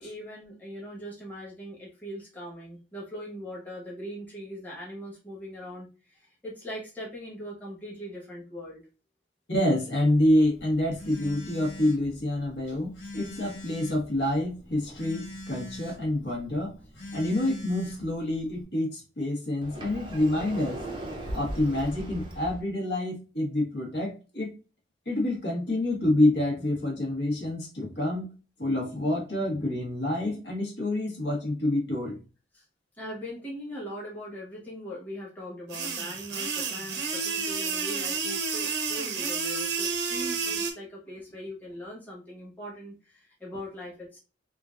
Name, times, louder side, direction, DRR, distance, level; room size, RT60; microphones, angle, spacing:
voice 1, 0.0-8.8 32.5-32.6 32.9-44.2, equal, 10° left, -6 dB, 1.1 m, -40 dB
voice 2, 9.5-16.7 17.1-20.8 21.3-24.5 25.1-28.3 28.6-32.2, left 1 dB, 60° left, -1 dB, 1.2 m, -27 dB
Telephone, 10.1-18.6, left 1 dB, 90° left, 1.5 m, -44 dB
Sliding door, 19.6-22.6, right 1 dB, 25° right, 0.6 m, -37 dB
sound 1, 35.7-40.7, right 5 dB, 65° right, 0.7 m, -30 dB
3.7 x 2.5 x 2.4 m, 0.33 s
head